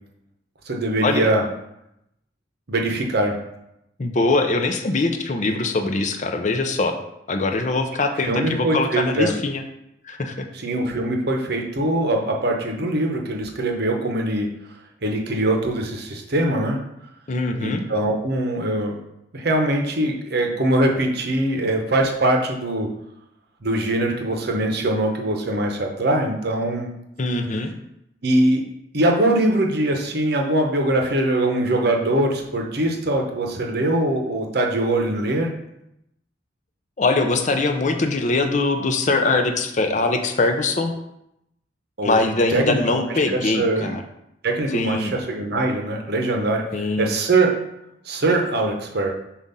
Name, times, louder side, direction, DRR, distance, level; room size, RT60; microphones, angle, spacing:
voice 1, 0.7-1.4 2.7-3.4 8.2-9.4 10.5-14.5 15.0-16.8 17.6-19.0 19.3-22.9 23.6-26.9 28.2-28.6 28.9-35.5 42.0-42.2 42.5-43.0 43.3-43.9 44.4-47.6 48.0-49.1, right 1 dB, 55° right, 2 dB, 0.9 m, -22 dB
voice 2, 4.0-6.9 7.3-9.6 10.0-10.5 17.3-17.8 27.2-27.7 37.0-40.9 42.0-44.0 44.7-45.1 46.7-47.1, left 3 dB, 40° left, 6 dB, 0.5 m, -22 dB
7.3 x 2.5 x 5.4 m, 0.83 s
head